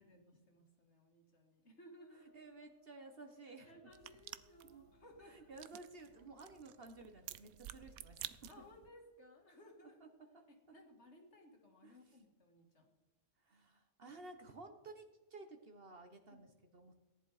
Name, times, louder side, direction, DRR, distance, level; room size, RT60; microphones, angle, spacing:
voice 1, 0.0-2.4 3.6-5.7 8.5-10.0 10.5-12.9 16.3-16.4, left 1 dB, 55° left, 2 dB, 2.4 m, -61 dB
Brass instrument, 2.0-8.7, left 3 dB, 80° left, 2.3 m, -72 dB
voice 2, 2.3-3.8 4.6-4.8 5.2-8.4 10.0-10.1 11.8-12.2 13.4-16.9, right 3 dB, 45° right, 5 dB, 1.3 m, -55 dB
sound 1, 3.9-8.9, right 12 dB, 90° right, 1.1 m, -52 dB
17.5 x 11.0 x 4.9 m, 1.1 s
omnidirectional pair, 1.4 m